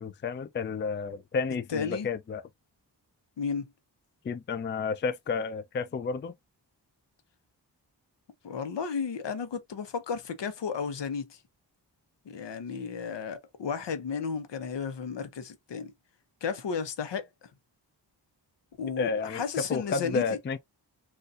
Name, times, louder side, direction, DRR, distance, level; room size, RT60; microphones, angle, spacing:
voice 1, 0.0-2.4 4.2-6.3 19.0-19.4 19.7-20.6, left 5 dB, 30° left, 0.4 m, -31 dB
voice 2, 1.7-2.1 3.4-3.7 8.4-11.4 12.3-15.9 16.4-17.5 18.8-20.2, left 6 dB, 75° left, 0.8 m, -33 dB
4.0 x 2.4 x 2.4 m
wide cardioid pair, 70°, 43 cm